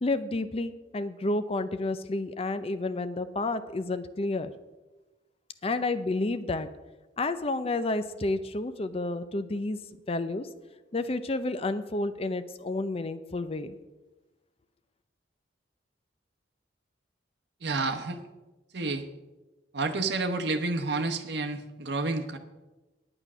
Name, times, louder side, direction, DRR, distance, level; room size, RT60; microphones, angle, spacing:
voice 1, 0.0-4.5 5.6-6.7 7.2-9.8 10.1-10.5 10.9-13.7, left 2 dB, 35° left, 11 dB, 0.6 m, -30 dB
voice 2, 17.6-18.2 18.7-19.0 19.7-22.4, right 3 dB, 65° right, 4 dB, 0.9 m, -30 dB
9.8 x 8.9 x 6.1 m, 1.1 s
head